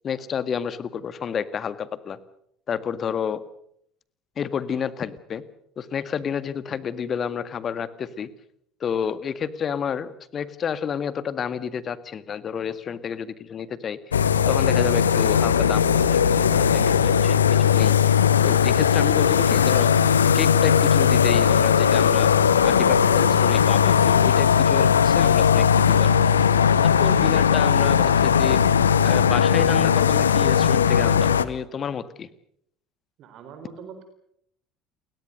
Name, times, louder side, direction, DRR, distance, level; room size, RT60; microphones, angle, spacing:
voice 1, 0.0-2.2 2.7-3.4 4.4-5.4 5.8-8.3 8.8-18.2 18.4-20.1 20.3-22.3 22.6-26.1 26.8-28.6 29.0-32.3, left 7 dB, 35° left, 14 dB, 1.8 m, -30 dB
sound 1, 14.1-31.5, left 7 dB, 75° left, 0.9 m, -18 dB
voice 2, 33.2-34.1, right 6 dB, 50° right, 8 dB, 4.0 m, -42 dB
29.5 x 22.0 x 6.6 m, 0.72 s
figure-of-eight pair, 60°, 0 cm